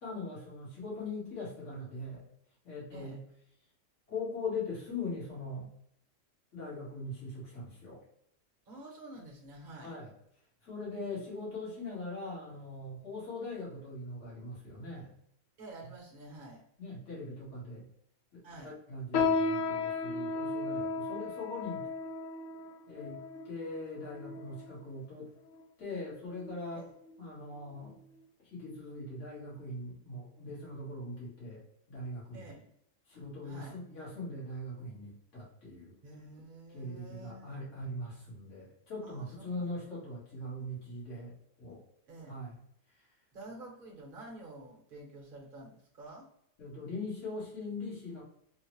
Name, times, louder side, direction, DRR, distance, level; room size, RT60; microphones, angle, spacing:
voice 1, 0.0-2.3 2.6-3.2 4.1-5.7 6.5-8.0 9.8-10.1 10.6-15.1 16.8-17.9 18.3-21.9 22.9-25.3 25.8-26.8 27.2-28.0 28.5-31.6 31.9-32.4 33.1-35.9 36.7-41.3 41.6-41.8 42.3-42.6 46.6-48.2, left 2 dB, 65° left, -7 dB, 1.7 m, -41 dB
voice 2, 8.7-10.0 15.6-16.6 18.4-18.7 24.5-24.6 26.7-26.8 32.3-32.7 33.4-33.8 36.0-37.6 39.0-39.7 40.7-40.9 42.1-42.4 43.3-46.3, right 2 dB, 50° right, -1 dB, 0.9 m, -49 dB
sound 1, 19.1-24.8 25.5-25.6 26.3-26.6 27.0-27.2 27.9-28.0, left 3 dB, 85° left, 1.0 m, -34 dB
3.7 x 2.0 x 2.9 m, 0.70 s
omnidirectional pair, 1.3 m